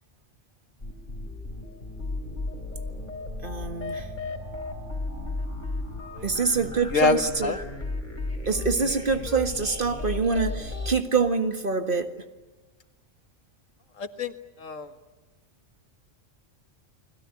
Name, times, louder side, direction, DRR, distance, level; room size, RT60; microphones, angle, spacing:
sound 1, 0.8-10.9, left 2 dB, 35° left, 4.2 m, -34 dB
voice 1, 3.4-4.1 6.2-7.6 8.5-12.2, right 4 dB, 45° right, 8 dB, 2.0 m, -25 dB
voice 2, 6.9-7.6 14.0-14.9, left 4 dB, 85° left, 9 dB, 2.0 m, -26 dB
30.0 x 21.0 x 9.3 m, 1.2 s
omnidirectional pair, 1.3 m